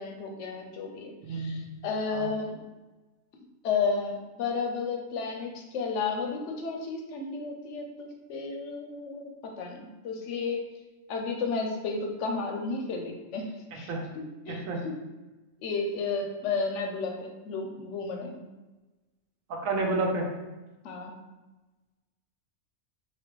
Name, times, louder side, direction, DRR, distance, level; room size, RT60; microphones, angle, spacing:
voice 1, 0.0-2.6 3.6-10.6 11.1-14.9 15.6-18.4 20.8-21.2, left 4 dB, 70° left, 2 dB, 0.9 m, -33 dB
voice 2, 1.2-1.8 2.1-2.3 13.7-14.0 14.5-14.8 19.5-20.3, right 2 dB, 80° right, 1 dB, 1.1 m, -30 dB
4.1 x 2.9 x 3.1 m, 1.1 s
omnidirectional pair, 1.4 m